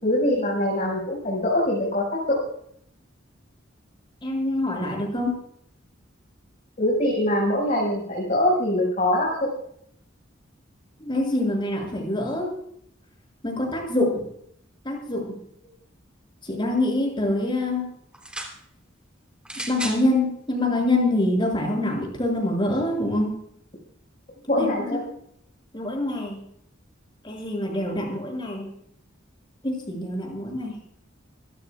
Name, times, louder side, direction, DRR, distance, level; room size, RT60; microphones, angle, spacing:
voice 1, 0.0-2.4 6.8-9.5 24.5-25.0, left 1 dB, 40° left, -3 dB, 5.6 m, -23 dB
voice 2, 4.2-5.3 11.0-12.5 13.4-14.2 14.8-15.3 16.4-17.8 19.7-23.3 24.6-24.7 25.7-26.4 27.2-28.7 29.6-30.7, left 1 dB, 25° left, 0 dB, 7.2 m, -25 dB
sound 1, 18.1-18.6 19.4-20.0 20.9-21.0, right 1 dB, 5° right, 3.3 m, -34 dB
26.5 x 15.5 x 2.4 m, 0.68 s
head